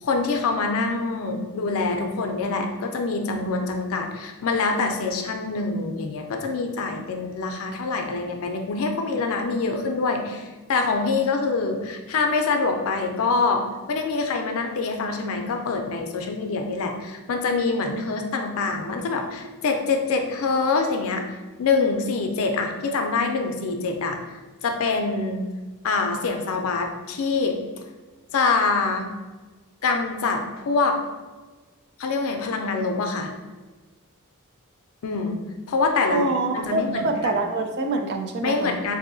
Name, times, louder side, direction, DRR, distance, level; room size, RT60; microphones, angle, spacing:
voice 1, 0.0-24.2 24.6-25.5 25.8-27.6 28.3-29.1 29.8-31.0 32.0-33.3 35.0-35.4 35.7-36.2 36.5-37.4 38.4-39.0, left 4 dB, 65° left, 4 dB, 0.4 m, -25 dB
voice 2, 36.1-38.8, right 2 dB, 50° right, 5 dB, 0.3 m, -25 dB
3.9 x 2.7 x 2.6 m, 1.3 s
head